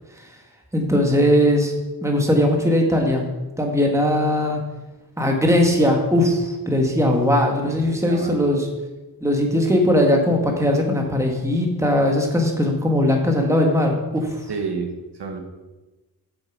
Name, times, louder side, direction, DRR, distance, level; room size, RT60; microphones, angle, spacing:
voice 1, 0.7-1.7 2.0-3.2 3.6-4.6 5.2-8.7 9.2-14.4, left 1 dB, 5° right, 1 dB, 1.5 m, -19 dB
voice 2, 7.6-8.3 14.5-15.4, right 5 dB, 80° right, 4 dB, 1.4 m, -30 dB
7.9 x 7.0 x 6.0 m, 1.1 s
wide cardioid pair, 125°, 40 cm